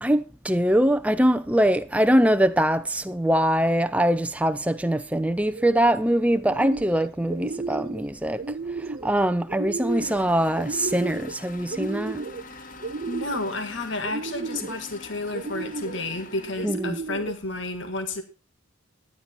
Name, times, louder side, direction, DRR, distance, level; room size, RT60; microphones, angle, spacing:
voice 1, 0.0-8.4 9.0-12.2 16.6-17.0, equal, 5° right, 0.6 m, -22 dB
sound 1, 5.4-5.9 6.3-7.0 7.3-8.0 8.4-9.1 9.5-10.2 10.6-11.4 11.7-12.4 12.8-13.6 14.0-14.8 15.3-16.0 16.6-17.4, right 3 dB, 45° right, 0.5 m, -33 dB
sound 2, 9.9-16.7, left 3 dB, 40° left, 1.0 m, -44 dB
voice 2, 13.1-18.2, left 2 dB, 60° left, 1.7 m, -31 dB
12.0 x 9.6 x 4.3 m
head